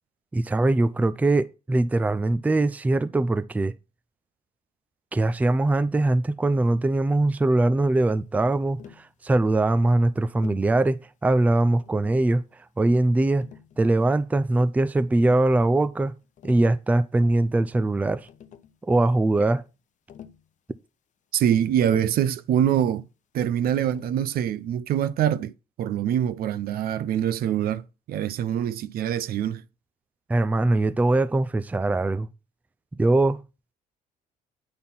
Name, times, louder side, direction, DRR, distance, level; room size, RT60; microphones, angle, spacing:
voice 1, 0.3-3.7 5.1-13.5 13.8-16.1 16.4-18.3 18.8-19.6 30.3-32.3 33.0-33.4, right 2 dB, 10° right, 0.4 m, -22 dB
Tap, 8.8-9.1 10.4-10.7 11.8-12.4 13.4-14.2 15.2-15.5 16.2-16.8 17.9-18.0 18.3-18.8 20.1-20.5 21.9-22.3 23.9-24.3, left 9 dB, 45° left, 0.6 m, -46 dB
voice 2, 21.3-23.1 23.3-29.6, right 10 dB, 60° right, 0.6 m, -24 dB
8.7 x 4.2 x 5.5 m
cardioid pair, 110°, 17 cm